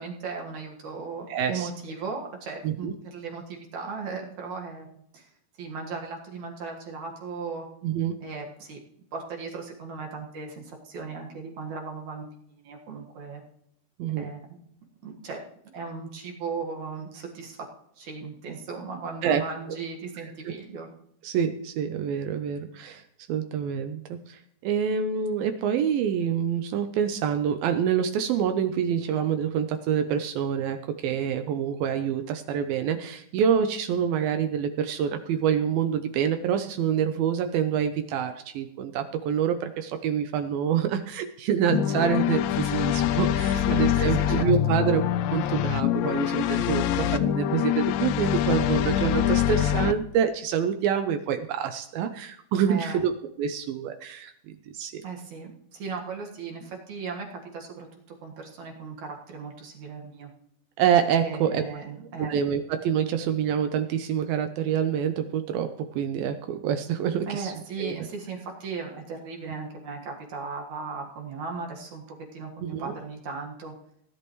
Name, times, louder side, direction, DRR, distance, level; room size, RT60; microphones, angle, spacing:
voice 1, 0.0-4.9 5.1-5.3 5.6-7.7 8.2-8.8 9.1-13.4 14.2-14.7 15.0-15.4 15.7-17.6 18.0-20.9 43.5-44.8 52.6-53.0 55.0-60.3 61.2-62.4 67.2-72.0 72.3-73.7, right 4 dB, 55° right, 0 dB, 2.6 m, -37 dB
voice 2, 1.3-1.7 2.6-2.9 7.8-8.2 14.0-14.3 19.2-19.4 20.5-20.6 21.2-23.0 23.3-45.1 45.3-53.1 53.4-55.0 60.8-61.6 62.2-67.5 67.8-67.9 72.6-72.9, right 8 dB, 75° right, 8 dB, 2.3 m, -26 dB
sound 1, 41.7-49.9, left 11 dB, 85° left, 2.0 m, -24 dB
18.5 x 11.0 x 3.1 m, 0.73 s
omnidirectional pair, 4.6 m